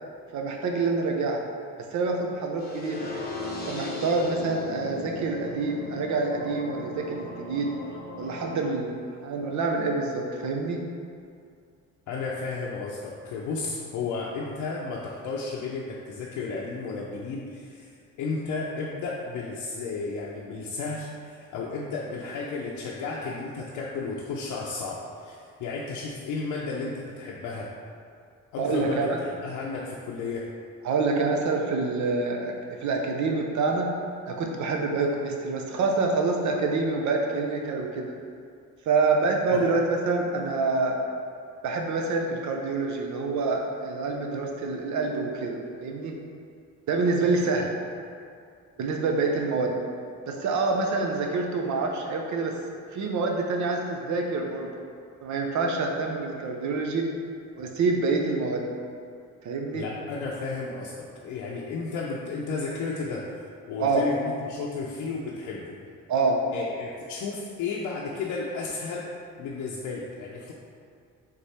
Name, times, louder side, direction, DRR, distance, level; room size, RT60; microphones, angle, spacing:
voice 1, 0.3-1.4 1.9-3.1 3.7-7.7 8.2-10.8 28.6-29.2 30.8-33.9 34.3-38.1 38.9-41.0 41.6-46.2 46.9-47.7 48.8-49.8 50.3-52.6 52.9-54.8 55.2-57.1 57.5-58.7 59.4-59.9 63.8-64.1 66.1-66.4, right 3 dB, 70° right, 1 dB, 0.7 m, -27 dB
sound 1, 2.6-8.6, left 2 dB, 30° left, 0.8 m, -37 dB
voice 2, 12.1-17.9 18.2-27.7 28.5-30.5 39.5-39.7 59.7-63.3 63.7-65.8 66.5-69.1 69.4-70.5, left 4 dB, 80° left, -4 dB, 0.6 m, -33 dB
3.7 x 3.3 x 4.2 m, 2.4 s
cardioid pair, 90°, 30 cm